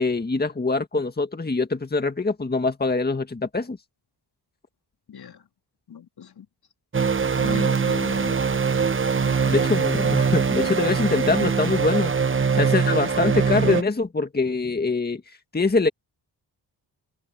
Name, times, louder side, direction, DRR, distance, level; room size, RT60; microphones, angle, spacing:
voice 1, 0.0-3.8 9.5-12.1 12.5-15.2 15.5-15.9, left 3 dB, 25° left, 1.8 m, -23 dB
voice 2, 5.1-5.5 5.9-6.5 7.4-8.4 9.2-10.0, left 8 dB, 65° left, 3.4 m, -38 dB
sound 1, 6.9-13.8, right 5 dB, 30° right, 0.9 m, -22 dB
cardioid pair, 80°, 41 cm